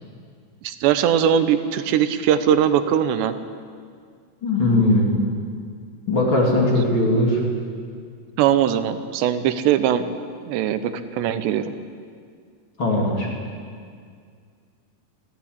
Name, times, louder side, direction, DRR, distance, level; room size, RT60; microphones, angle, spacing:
voice 1, 0.6-3.4 8.4-10.2 10.4-11.8, right 9 dB, 85° right, 11 dB, 3.1 m, -20 dB
voice 2, 4.4-5.2 6.1-7.4 12.8-13.3, left 1 dB, 30° left, -2 dB, 3.4 m, -19 dB
21.5 x 15.5 x 8.6 m, 2.1 s
omnidirectional pair, 4.9 m